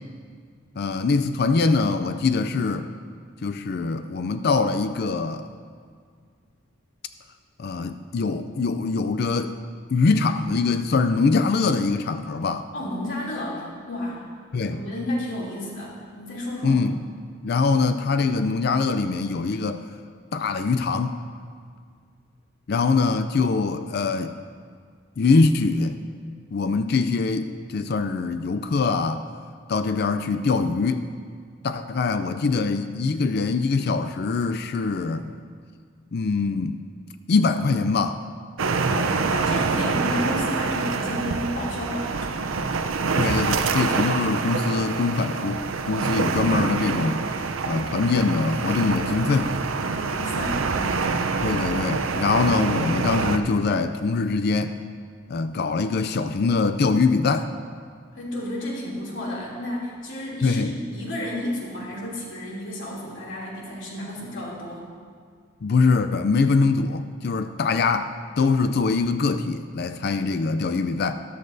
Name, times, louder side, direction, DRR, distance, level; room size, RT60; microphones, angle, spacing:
voice 1, 0.8-2.9 3.4-5.5 7.6-9.6 9.9-12.7 14.5-14.8 16.6-17.0 17.4-19.8 20.3-21.2 22.7-24.3 25.2-26.0 26.5-29.2 29.7-31.1 31.6-35.4 36.1-36.8 37.3-38.2 43.2-47.2 47.7-49.5 51.4-54.8 55.3-57.5 60.4-60.7 65.6-71.1, left 4 dB, 50° left, 9 dB, 0.4 m, -23 dB
voice 2, 12.7-14.2 14.6-16.8 38.9-42.6 49.8-51.1 58.1-64.9, left 1 dB, 65° left, -5 dB, 2.9 m, -32 dB
sound 1, 38.6-53.4, right 4 dB, 85° right, 0.6 m, -26 dB
13.5 x 11.5 x 2.7 m, 2.1 s
head